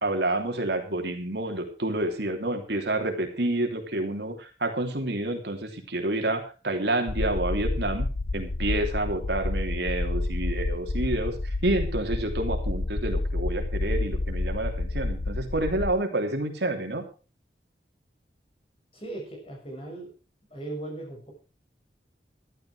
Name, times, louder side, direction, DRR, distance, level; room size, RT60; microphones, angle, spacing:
voice 1, 0.0-8.1 8.3-17.0, right 2 dB, 75° right, 3 dB, 3.0 m, -29 dB
sound 1, 7.1-15.9, left 2 dB, 85° left, 0.8 m, -29 dB
voice 2, 18.9-20.1 20.5-21.3, right 2 dB, 30° left, 1 dB, 6.3 m, -38 dB
13.5 x 12.0 x 5.0 m, 0.35 s
head